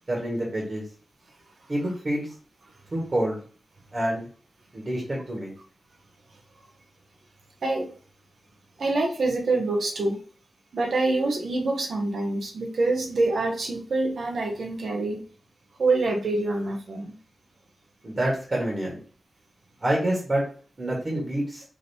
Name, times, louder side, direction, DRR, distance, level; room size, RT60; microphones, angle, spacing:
voice 1, 0.1-0.8 1.7-2.3 2.9-3.4 3.9-4.3 4.7-5.5 18.0-19.0 19.8-20.4 20.8-21.6, right 1 dB, 40° right, -2 dB, 1.5 m, -27 dB
voice 2, 7.6-7.9 8.8-10.2 10.7-15.2 15.8-17.1, right 2 dB, 85° right, 1 dB, 0.8 m, -26 dB
5.0 x 2.9 x 2.8 m, 0.42 s
wide cardioid pair, 100°, 0 cm